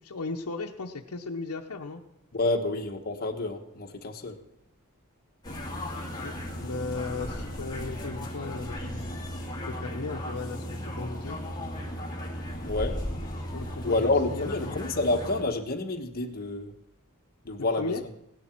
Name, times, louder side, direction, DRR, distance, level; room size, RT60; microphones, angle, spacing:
voice 1, 0.0-2.0 6.2-6.3 6.6-9.0 9.7-11.4 13.5-14.8 17.6-18.0, left 3 dB, 80° left, 0.8 m, -36 dB
voice 2, 2.3-4.4 12.6-13.0 13.8-16.7 17.4-18.0, left 2 dB, 45° left, 1.3 m, -28 dB
sound 1, 5.4-15.4, equal, 20° left, 2.2 m, -36 dB
17.0 x 11.5 x 4.5 m
head